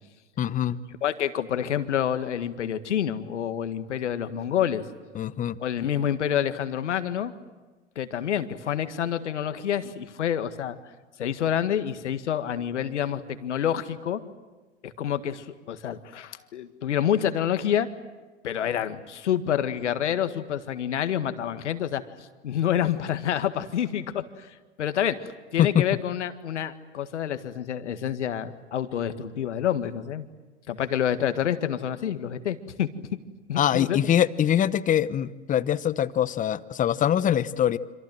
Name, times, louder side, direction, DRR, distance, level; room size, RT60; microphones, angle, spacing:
voice 1, 0.4-0.8 5.1-5.5 25.6-25.8 33.6-37.8, left 10 dB, 20° left, 16 dB, 0.9 m, -23 dB
voice 2, 1.0-4.8 5.6-7.3 8.0-10.8 11.2-14.2 14.8-17.9 18.4-24.5 24.8-25.2 25.5-30.3 30.7-32.9 33.5-34.0, left 9 dB, 70° left, 10 dB, 1.9 m, -28 dB
26.5 x 26.5 x 7.8 m, 1.2 s
figure-of-eight pair, 95°, 36 cm